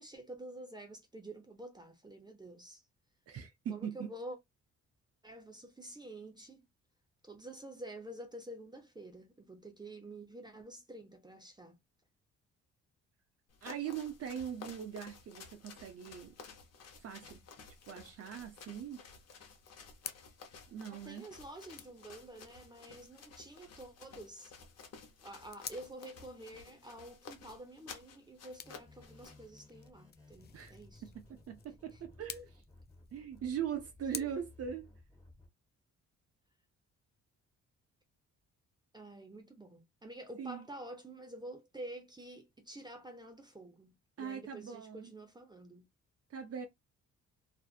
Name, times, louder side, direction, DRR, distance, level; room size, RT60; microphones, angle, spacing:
voice 1, 0.0-2.8 3.7-4.4 5.2-6.7 7.2-11.8 21.0-24.5 25.2-31.0 34.1-34.3 38.9-45.9, right 1 dB, 15° right, 0.7 m, -49 dB
voice 2, 3.3-4.1 13.6-16.3 17.0-17.4 17.9-19.0 20.7-21.2 30.5-30.8 31.1-32.6 33.1-34.9 40.4-40.7 44.2-45.1 46.3-46.7, right 8 dB, 55° right, 0.6 m, -41 dB
sound 1, 13.5-29.5, left 5 dB, 55° left, 0.9 m, -54 dB
sound 2, 16.2-34.2, left 8 dB, 35° left, 0.4 m, -53 dB
sound 3, 28.6-35.5, left 2 dB, 10° left, 1.8 m, -58 dB
2.5 x 2.5 x 2.3 m
cardioid pair, 90°, 30 cm